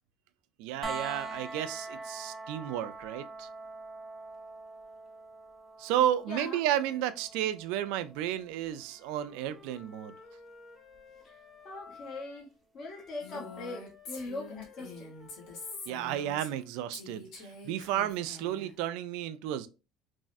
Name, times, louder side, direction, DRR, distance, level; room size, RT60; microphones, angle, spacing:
voice 1, 0.6-3.5 5.8-10.1 15.9-19.7, right 11 dB, 75° right, 0.3 m, -32 dB
sound 1, 0.8-12.6 14.6-14.7, right 3 dB, 15° right, 0.6 m, -45 dB
voice 2, 6.3-6.6 11.2-11.3 11.6-12.5 12.7-15.1, left 2 dB, 50° left, 0.9 m, -41 dB
Wind instrument woodwind instrument, 8.7-12.5 12.8-16.7, left 4 dB, 20° left, 0.9 m, -54 dB
Female speech woman speaking, 13.2-16.6 16.9-18.7, left 3 dB, 70° left, 1.3 m, -45 dB
3.4 x 2.1 x 2.5 m
supercardioid pair, 100°, 0 cm